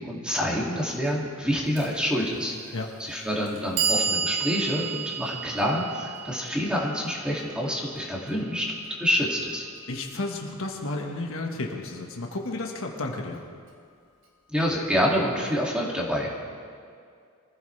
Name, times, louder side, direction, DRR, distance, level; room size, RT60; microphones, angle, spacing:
voice 1, 0.0-8.7 9.0-9.7 14.5-16.4, equal, 5° right, -4 dB, 2.4 m, -27 dB
Clock, 1.8-1.9 2.8-2.9 3.5-9.5, right 5 dB, 80° right, 3.4 m, -32 dB
voice 2, 9.9-13.4, left 2 dB, 60° left, 1 dB, 1.6 m, -32 dB
24.5 x 15.0 x 3.4 m, 2.3 s
head